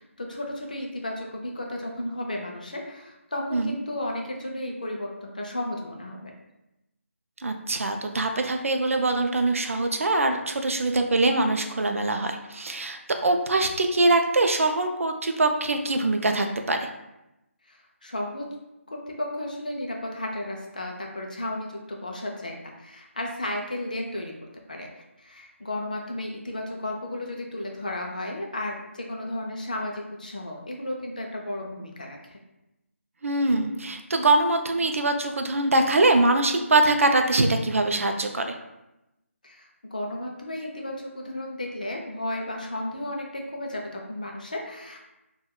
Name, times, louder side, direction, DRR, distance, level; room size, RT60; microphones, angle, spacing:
voice 1, 0.0-6.3 17.7-18.5 18.9-24.3 24.7-32.4 39.4-45.0, left 1 dB, 35° left, 0 dB, 0.3 m, -34 dB
voice 2, 7.4-16.9 33.2-38.5, right 2 dB, 70° right, 5 dB, 0.3 m, -23 dB
2.2 x 2.2 x 3.5 m, 0.93 s
figure-of-eight pair, 180°, 8 cm